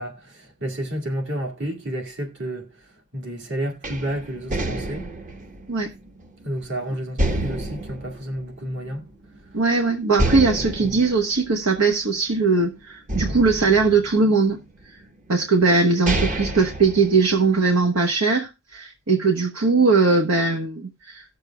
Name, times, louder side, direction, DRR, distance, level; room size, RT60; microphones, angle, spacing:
voice 1, 0.0-5.1 6.4-9.0 10.8-11.0, right 1 dB, 55° right, 1.9 m, -31 dB
sound 1, 3.8-6.6 7.2-9.1 9.5-9.6 10.1-12.5 13.1-14.7 15.4-15.5 15.9-17.7, right 1 dB, 35° right, 1.1 m, -28 dB
voice 2, 9.5-14.6 15.3-21.2, right 4 dB, 80° right, 1.1 m, -20 dB
18.0 x 6.8 x 2.2 m
head